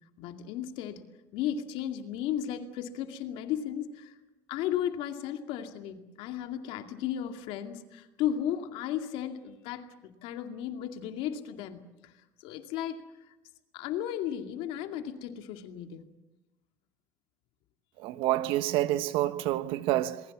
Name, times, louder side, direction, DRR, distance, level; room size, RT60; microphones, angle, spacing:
voice 1, 0.2-4.1 4.5-12.1 12.4-13.1 13.7-16.0, left 10 dB, 75° left, 2.4 m, -35 dB
voice 2, 18.0-20.2, right 15 dB, 75° right, 1.1 m, -28 dB
27.5 x 21.0 x 7.3 m
cardioid pair, 115°, 9 cm